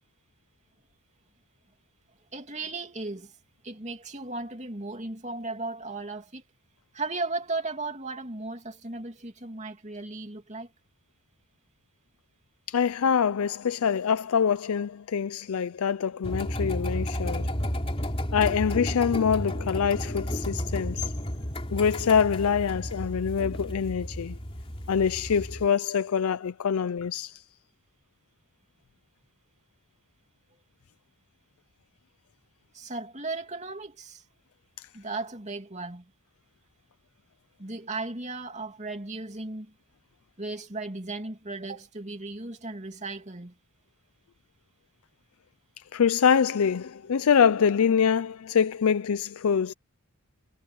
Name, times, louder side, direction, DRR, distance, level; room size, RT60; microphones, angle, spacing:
voice 1, 2.3-3.3 3.6-6.4 6.9-10.7 32.7-34.2 34.9-36.1 37.6-39.7 40.4-43.5, right 3 dB, 30° right, 2.8 m, -36 dB
voice 2, 12.7-17.5 18.3-21.1 21.7-24.4 24.9-27.4 34.8-34.9 45.9-49.7, left 7 dB, 75° left, 0.4 m, -25 dB
sound 1, 16.2-25.7, equal, 25° left, 3.3 m, -32 dB
head